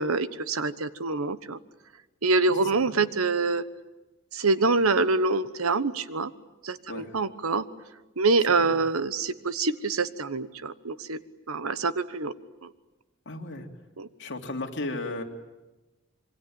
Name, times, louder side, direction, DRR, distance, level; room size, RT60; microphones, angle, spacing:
voice 1, 0.0-1.6 2.2-3.6 4.3-6.3 6.6-7.7 8.2-11.2 11.5-12.3 12.6-12.7 14.0-14.1, right 3 dB, 85° right, 13 dB, 1.2 m, -25 dB
voice 2, 13.2-13.7 14.2-15.2, left 2 dB, 60° left, 2 dB, 3.0 m, -34 dB
26.5 x 23.5 x 8.9 m, 1.1 s
head